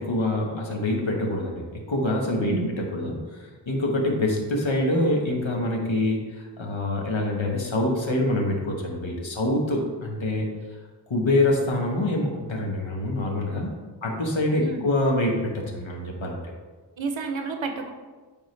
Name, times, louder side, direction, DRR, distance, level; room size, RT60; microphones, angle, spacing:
voice 1, 0.0-10.5 11.1-16.4, left 1 dB, 85° left, 0 dB, 1.1 m, -25 dB
voice 2, 2.4-2.8 14.6-14.9 17.0-17.9, right 4 dB, 85° right, 6 dB, 0.6 m, -30 dB
9.1 x 3.6 x 3.1 m, 1.3 s
wide cardioid pair, 40°, 45 cm